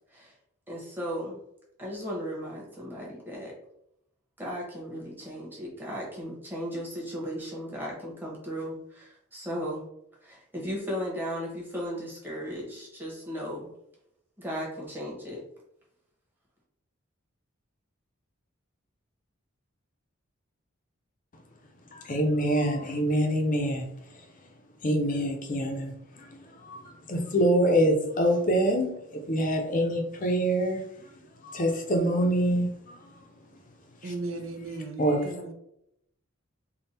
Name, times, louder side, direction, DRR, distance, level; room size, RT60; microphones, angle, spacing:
voice 1, 0.7-1.4 1.8-3.5 4.4-9.9 10.2-13.7 14.4-15.4, equal, 10° right, 1.1 m, -36 dB
voice 2, 21.9-24.2 24.8-30.8 31.4-33.1 34.0-34.1 35.0-35.4, equal, 40° left, 0.6 m, -26 dB
voice 3, 34.0-35.5, right 2 dB, 70° right, 0.6 m, -36 dB
3.5 x 2.3 x 4.1 m
head